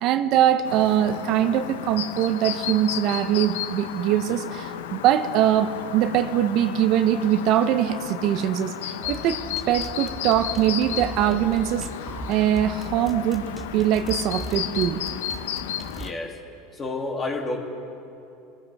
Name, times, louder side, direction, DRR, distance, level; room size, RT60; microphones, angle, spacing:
voice 1, 0.0-11.9 12.3-15.0, right 10 dB, 55° right, 9 dB, 0.8 m, -22 dB
Chirp tweet, 0.6-16.1, left 10 dB, 80° left, 0.7 m, -33 dB
sound 1, 9.0-16.1, right 3 dB, 15° right, 0.9 m, -39 dB
voice 2, 16.0-16.3 16.8-17.7, left 2 dB, 30° left, 0 dB, 2.7 m, -29 dB
27.5 x 15.0 x 3.5 m, 2.6 s
hypercardioid pair, 90°, 0 cm